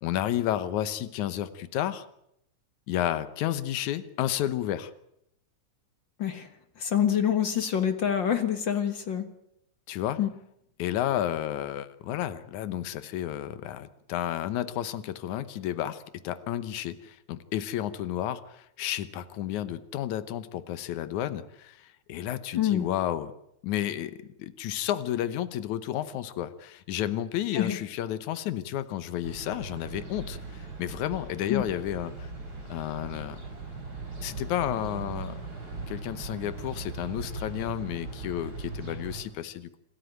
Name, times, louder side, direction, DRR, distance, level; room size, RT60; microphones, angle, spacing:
voice 1, 0.0-2.1 2.9-4.9 9.9-10.2 10.8-23.3 23.6-32.3 32.7-33.5 34.2-35.4 35.9-39.8, left 12 dB, 85° left, 14 dB, 2.4 m, -32 dB
voice 2, 6.8-9.3 10.2-10.3 22.5-22.9 27.5-27.8 31.5-31.6, left 9 dB, 45° left, 9 dB, 1.8 m, -26 dB
sound 1, 29.2-39.2, right 3 dB, 40° right, 7.0 m, -39 dB
27.0 x 13.5 x 9.2 m, 0.78 s
omnidirectional pair, 3.3 m